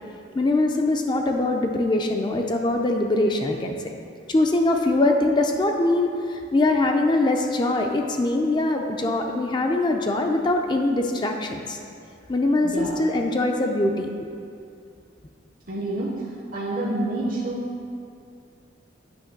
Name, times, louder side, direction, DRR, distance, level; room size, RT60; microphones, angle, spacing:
voice 1, 0.3-3.9 4.3-11.8 12.3-14.1, left 2 dB, 25° left, 3 dB, 0.4 m, -22 dB
voice 2, 12.6-13.0 15.7-16.2 16.5-17.6, right 1 dB, 45° right, -4 dB, 0.7 m, -28 dB
8.9 x 3.1 x 5.8 m, 2.4 s
head